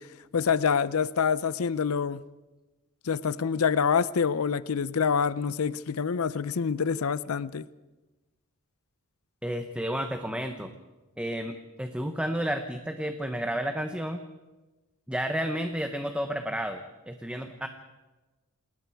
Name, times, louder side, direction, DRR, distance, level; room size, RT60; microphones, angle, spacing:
voice 1, 0.3-2.2 3.0-7.7, left 6 dB, 70° left, 0.6 m, -26 dB
voice 2, 9.4-10.7 11.2-14.2 15.1-17.7, equal, 5° right, 0.9 m, -31 dB
28.5 x 19.5 x 4.7 m
head